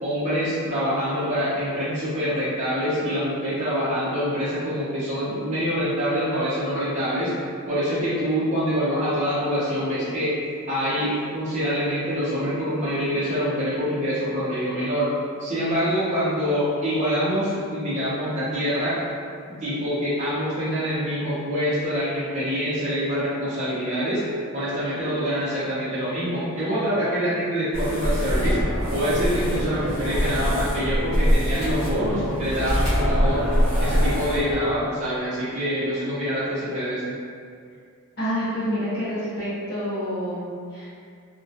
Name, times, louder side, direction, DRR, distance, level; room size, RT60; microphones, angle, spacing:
voice 1, 0.0-7.3 7.7-10.4 10.7-15.1 15.4-19.0 19.6-24.2 24.5-28.6 28.9-33.4 33.8-37.2, equal, 30° right, -11 dB, 0.5 m, -25 dB
sound 1, 27.7-34.5, equal, 5° left, 0.7 m, -24 dB
voice 2, 38.2-40.9, equal, 45° left, -15 dB, 0.6 m, -28 dB
2.2 x 2.1 x 2.6 m, 2.3 s
head